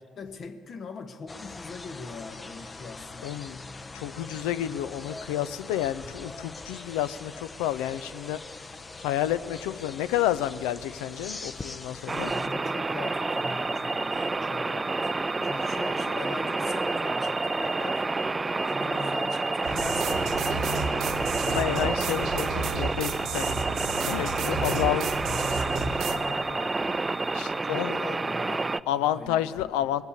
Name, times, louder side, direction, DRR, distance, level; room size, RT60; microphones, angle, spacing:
voice 1, 0.1-3.4 12.3-15.1 15.4-18.1 18.6-21.4 24.6-29.9, left 4 dB, 50° left, 1.2 m, -41 dB
sound 1, 1.3-12.5, left 3 dB, 25° left, 0.7 m, -42 dB
voice 2, 3.2-3.6 3.9-8.4 9.0-12.3 15.4-15.5 21.5-23.6 24.1-25.1 27.3-28.0 28.9-30.0, left 12 dB, 85° left, 0.4 m, -30 dB
sound 2, 12.1-28.8, right 3 dB, 25° right, 0.3 m, -29 dB
sound 3, 19.6-26.2, right 4 dB, 70° right, 1.0 m, -32 dB
20.5 x 8.0 x 7.1 m
supercardioid pair, 65°, 0 cm